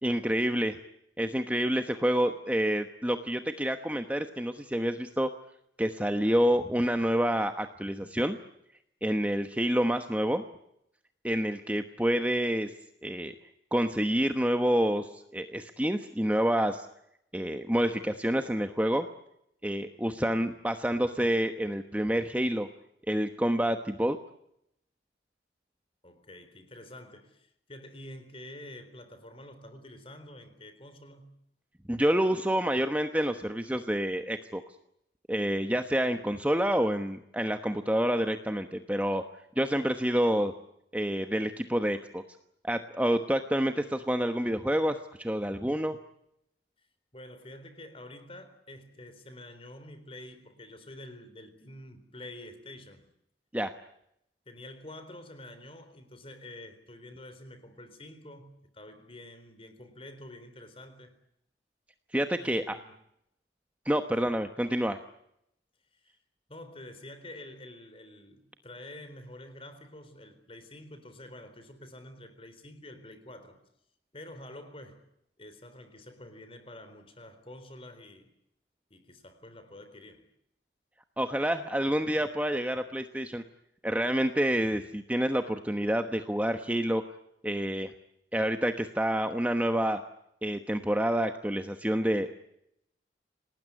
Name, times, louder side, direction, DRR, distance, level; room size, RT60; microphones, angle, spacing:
voice 1, 0.0-0.8 1.2-5.3 5.8-8.4 9.0-10.4 11.2-12.7 13.0-13.3 13.7-16.9 17.3-19.1 19.6-22.7 23.1-24.2 31.9-34.6 35.3-39.2 39.6-40.5 40.9-42.2 42.6-46.0 53.5-53.7 62.1-62.8 63.8-65.0 81.2-83.4 83.8-87.0 87.4-87.9 88.3-90.0 90.4-92.4, equal, 10° right, 1.1 m, -28 dB
voice 2, 26.0-31.3 47.1-53.1 54.5-61.1 62.4-62.9 64.2-64.3 65.9-66.2 66.5-73.6 74.1-75.0 75.4-78.3 78.9-80.3, left 1 dB, 30° left, 3.9 m, -48 dB
28.0 x 19.0 x 9.8 m
head